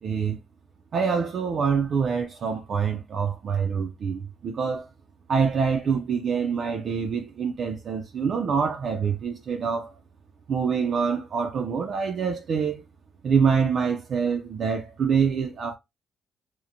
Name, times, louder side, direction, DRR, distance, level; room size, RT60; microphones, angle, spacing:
voice 1, 0.0-0.4 0.9-4.9 5.3-9.9 10.5-12.8 13.2-15.7, right 6 dB, 60° right, 0.4 m, -25 dB
2.9 x 2.0 x 2.5 m
cardioid pair, 90°, 0 cm